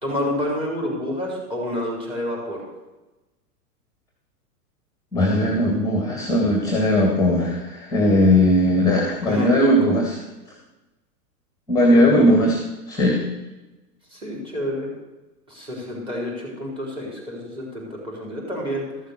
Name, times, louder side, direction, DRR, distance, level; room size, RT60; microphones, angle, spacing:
voice 1, 0.0-2.6 9.3-9.9 11.8-12.2 14.1-14.9 15.5-18.8, left 1 dB, 10° right, -1 dB, 4.2 m, -28 dB
voice 2, 5.1-10.1 11.7-12.6 12.9-13.2, equal, 5° left, 0 dB, 2.0 m, -18 dB
13.5 x 6.6 x 6.6 m, 1.1 s
hypercardioid pair, 110°, 49 cm